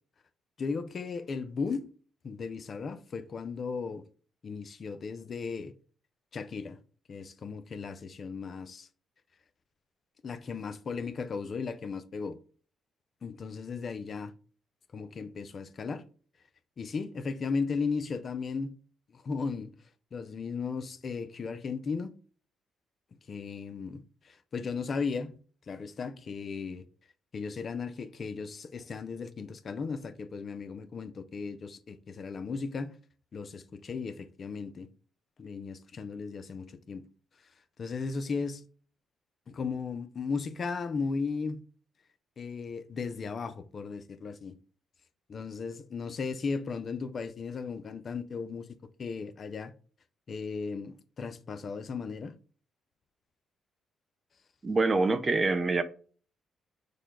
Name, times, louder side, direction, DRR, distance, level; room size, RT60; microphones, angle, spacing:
voice 1, 0.6-1.9 2.2-4.0 4.4-5.7 6.3-6.8 7.1-8.9 10.2-12.4 13.2-14.3 14.9-16.0 16.8-18.7 19.1-19.7 20.1-22.1 23.3-25.4 25.7-26.8 27.3-33.0 33.3-34.9 35.4-37.1 37.8-38.6 39.5-41.6 42.4-44.6 45.3-48.7 49.0-49.7 50.3-52.4, left 5 dB, 45° left, 0.5 m, -36 dB
voice 2, 54.6-55.8, right 3 dB, 30° right, 0.6 m, -25 dB
6.5 x 2.2 x 3.7 m
cardioid pair, 100°, 0 cm